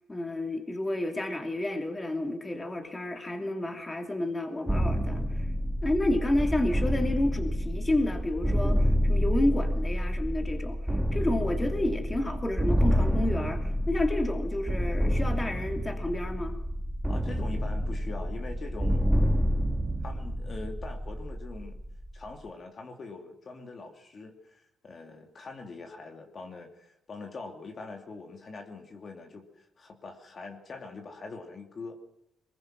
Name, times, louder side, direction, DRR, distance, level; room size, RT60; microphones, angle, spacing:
voice 1, 0.1-5.5 5.8-10.8 11.1-16.6, left 1 dB, 20° left, 4 dB, 2.9 m, -30 dB
sound 1, 4.7-22.3, equal, 5° right, 2.2 m, -28 dB
voice 2, 17.1-19.1 20.0-21.8 22.1-32.0, left 3 dB, 40° left, 3 dB, 2.8 m, -43 dB
22.5 x 21.0 x 6.2 m, 0.81 s
cardioid pair, 90°, 0 cm